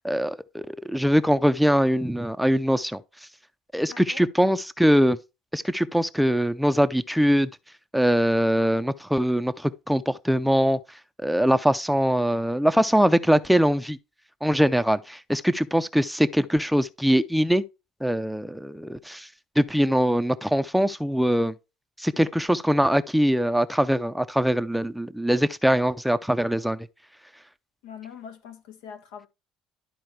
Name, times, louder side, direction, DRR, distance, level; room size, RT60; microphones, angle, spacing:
voice 1, 0.0-3.0 3.7-5.2 5.5-7.5 7.9-10.8 11.2-14.0 14.4-17.6 18.0-19.3 19.6-21.5 22.0-26.8, equal, ahead, 0.5 m, -22 dB
voice 2, 3.9-4.3 27.8-29.3, left 7 dB, 90° left, 1.4 m, -43 dB
12.0 x 4.4 x 3.2 m
supercardioid pair, 105°, 0 cm